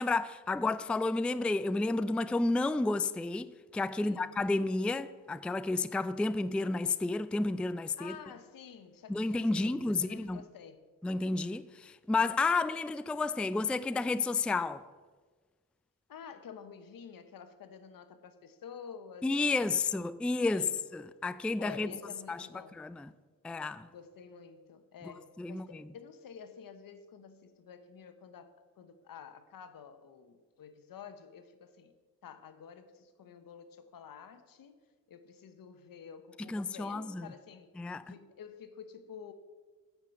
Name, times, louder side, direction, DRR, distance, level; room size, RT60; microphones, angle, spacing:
voice 1, 0.0-8.2 9.1-10.4 11.0-14.8 19.2-21.9 22.3-22.5 22.8-23.1 23.4-23.9 25.4-25.8 36.5-37.3 37.8-38.0, left 3 dB, 5° left, 0.3 m, -31 dB
voice 2, 4.0-4.3 8.0-10.8 16.1-19.4 19.8-20.0 20.5-20.8 21.6-22.8 23.9-31.9 32.2-34.8 35.1-37.7 38.1-39.3, left 7 dB, 70° left, 1.1 m, -50 dB
9.0 x 5.9 x 7.9 m
cardioid pair, 65°, 35 cm